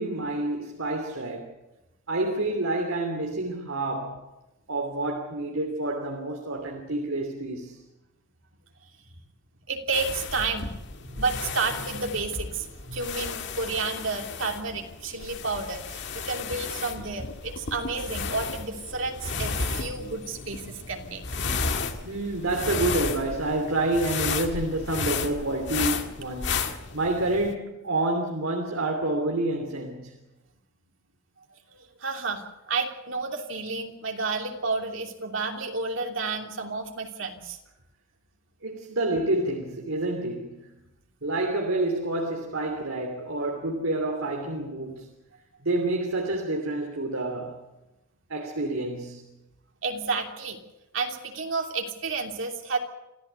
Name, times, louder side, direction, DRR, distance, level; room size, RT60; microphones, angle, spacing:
voice 1, 0.0-1.5 2.1-4.2 4.7-7.8 22.0-30.2 38.6-40.7 41.2-45.1 45.6-47.7 48.3-49.3, right 2 dB, 90° right, 3.0 m, -28 dB
voice 2, 9.7-21.2 31.5-37.6 49.8-50.6 50.9-52.8, right 4 dB, 65° right, 3.0 m, -31 dB
sound 1, 9.9-27.5, left 4 dB, 60° left, 1.9 m, -33 dB
27.0 x 15.0 x 8.3 m
head